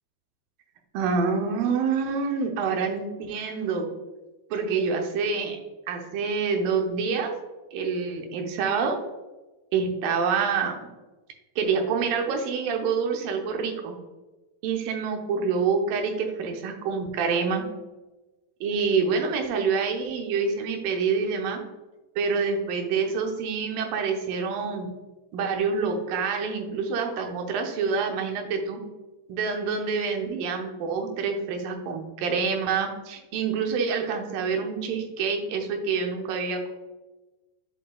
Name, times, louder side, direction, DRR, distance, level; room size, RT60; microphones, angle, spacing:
voice 1, 0.9-3.9 4.5-5.6 5.9-7.3 7.7-9.0 9.7-10.9 11.6-13.9 14.6-17.6 18.6-21.6 22.2-24.9 25.3-28.8 29.3-36.7, right 5 dB, 75° right, 3 dB, 2.3 m, -27 dB
9.8 x 4.5 x 2.3 m, 1.1 s
omnidirectional pair, 4.4 m